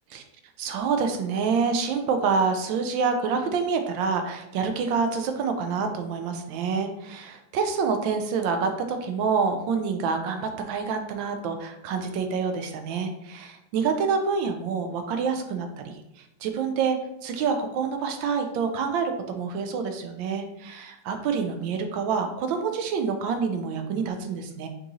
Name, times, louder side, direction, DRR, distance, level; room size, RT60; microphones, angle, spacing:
voice 1, 0.6-15.9 16.4-17.0 17.2-24.7, right 5 dB, 75° right, 6 dB, 1.3 m, -27 dB
6.0 x 2.7 x 3.0 m, 0.82 s
omnidirectional pair, 2.2 m